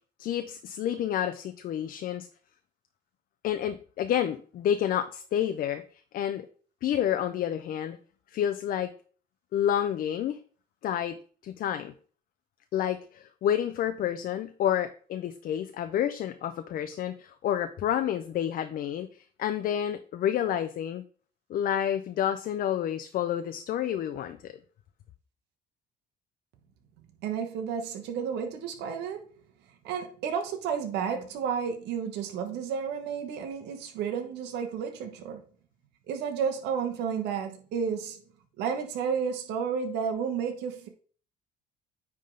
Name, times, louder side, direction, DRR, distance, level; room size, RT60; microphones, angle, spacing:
voice 1, 0.2-2.3 3.4-6.5 6.8-8.0 8.3-8.9 9.5-10.4 10.8-11.2 11.4-11.9 12.7-21.0 21.5-24.5, left 10 dB, 60° left, 0.6 m, -29 dB
voice 2, 27.2-29.2 29.8-35.4 36.1-38.2 38.6-40.9, right 7 dB, 85° right, 1.2 m, -31 dB
9.4 x 3.7 x 3.8 m
cardioid pair, 110°, 17 cm